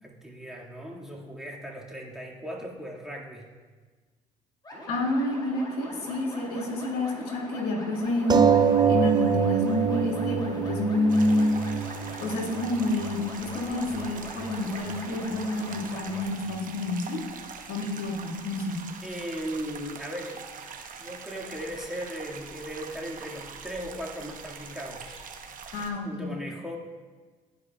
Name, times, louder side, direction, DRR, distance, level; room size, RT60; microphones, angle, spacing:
voice 1, 0.0-3.5 19.0-20.4 21.0-25.2 26.0-26.8, equal, 5° right, -3 dB, 1.9 m, -37 dB
sound 1, 4.6-16.3, equal, 25° left, 1.9 m, -43 dB
voice 2, 4.9-8.5 8.9-11.5 12.2-17.2 17.7-18.8 25.7-26.3, left 1 dB, 70° left, -2 dB, 1.8 m, -28 dB
sound 2, 8.3-13.3 14.1-14.2 14.5-14.6, right 7 dB, 25° right, 0.5 m, -25 dB
sound 3, 11.1-25.9, right 5 dB, 55° right, 0.9 m, -43 dB
12.0 x 5.0 x 2.3 m, 1.4 s
hypercardioid pair, 60°, 17 cm